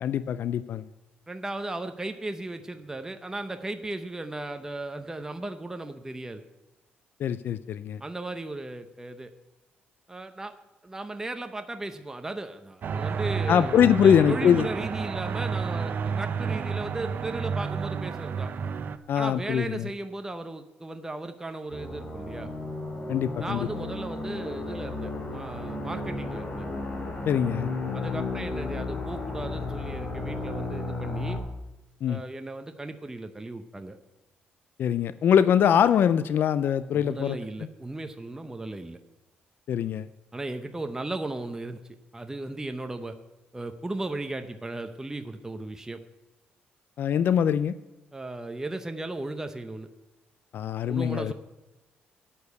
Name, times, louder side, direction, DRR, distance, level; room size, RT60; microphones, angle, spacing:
voice 1, 0.0-0.9 7.2-8.0 13.5-14.7 19.1-19.9 23.1-23.7 27.3-27.7 32.0-32.2 34.8-37.4 39.7-40.1 47.0-47.7 50.5-51.3, left 8 dB, 60° left, 14 dB, 0.4 m, -23 dB
voice 2, 1.3-6.5 8.0-9.3 10.1-10.5 10.8-18.5 19.1-22.5 23.4-26.7 27.9-31.4 32.1-34.0 36.9-39.0 40.3-41.8 42.1-43.1 43.5-46.0 48.1-49.9 50.9-51.3, right 2 dB, 15° right, 7 dB, 0.7 m, -36 dB
sound 1, 12.8-19.0, right 6 dB, 55° right, 0.6 m, -30 dB
sound 2, 21.7-31.4, left 2 dB, 35° left, 2.9 m, -33 dB
8.6 x 6.9 x 8.1 m, 1.1 s
cardioid pair, 85°, 4 cm